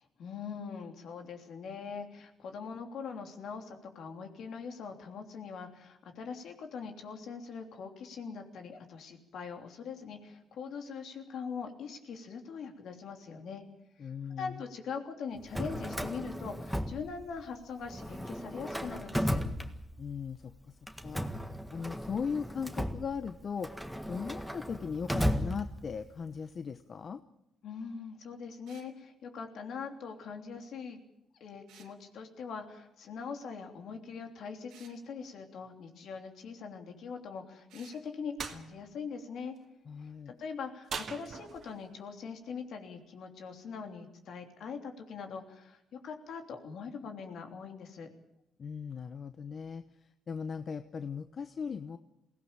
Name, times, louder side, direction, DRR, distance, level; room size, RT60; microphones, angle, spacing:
voice 1, 0.2-13.6 14.0-19.4 27.6-31.0 31.4-39.5 40.0-48.1, left 5 dB, 70° left, 5 dB, 3.2 m, -42 dB
voice 2, 14.0-14.6 20.0-20.8 21.0-21.3 21.7-23.8 24.1-27.2 39.9-40.3 48.6-52.0, left 6 dB, 45° left, 10 dB, 0.9 m, -38 dB
Drawer open or close, 15.4-17.6 17.9-20.2 20.9-26.1, equal, ahead, 1.6 m, -35 dB
sound 1, 28.7-28.9 31.7-32.0 34.7-35.0 37.7-38.0, right 8 dB, 85° right, 2.9 m, -57 dB
sound 2, 38.4-38.6 40.9-41.8, right 6 dB, 55° right, 2.2 m, -40 dB
22.5 x 17.0 x 8.8 m, 0.86 s
cardioid pair, 90°, 0 cm